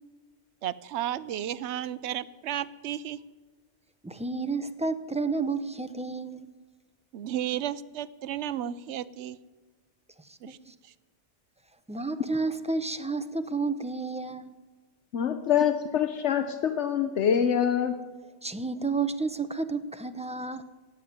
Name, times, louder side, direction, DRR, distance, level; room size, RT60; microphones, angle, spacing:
voice 1, 0.6-3.2 7.1-9.4 10.4-10.6, right 11 dB, 70° right, 17 dB, 0.9 m, -33 dB
voice 2, 4.0-6.5 10.3-10.7 11.9-14.4 18.4-20.6, right 4 dB, 10° right, 10 dB, 0.4 m, -31 dB
voice 3, 15.1-18.0, left 8 dB, 75° left, 9 dB, 1.1 m, -25 dB
17.5 x 7.3 x 9.4 m, 1.3 s
omnidirectional pair, 1.2 m